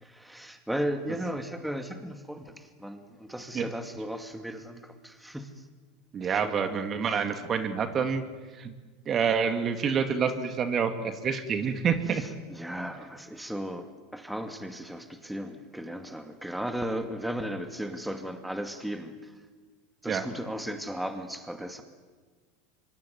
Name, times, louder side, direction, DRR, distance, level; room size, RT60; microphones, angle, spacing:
voice 1, 0.0-5.7 6.2-6.8 7.1-7.2 12.1-19.3 20.0-21.8, equal, 5° right, 7 dB, 2.3 m, -36 dB
voice 2, 6.1-8.2 8.5-8.7 9.1-12.2 20.1-20.3, right 6 dB, 30° right, 8 dB, 2.5 m, -27 dB
25.0 x 25.0 x 9.5 m, 1.4 s
supercardioid pair, 115°, 0 cm